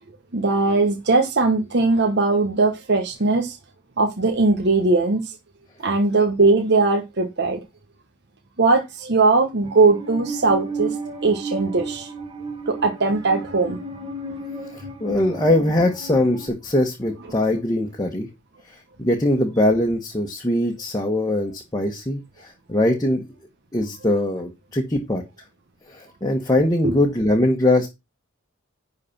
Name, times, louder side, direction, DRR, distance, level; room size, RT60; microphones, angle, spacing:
voice 1, 0.3-3.6 4.0-5.4 5.8-7.6 8.6-11.0 11.2-12.1 12.7-13.8 26.8-27.0, right 3 dB, 55° right, 1.2 m, -19 dB
Musical instrument, 9.6-16.5, right 3 dB, 25° right, 2.1 m, -33 dB
voice 2, 14.7-18.3 18.7-23.2 23.7-25.2 25.9-27.9, left 1 dB, 20° left, 1.3 m, -22 dB
10.5 x 4.2 x 5.9 m
head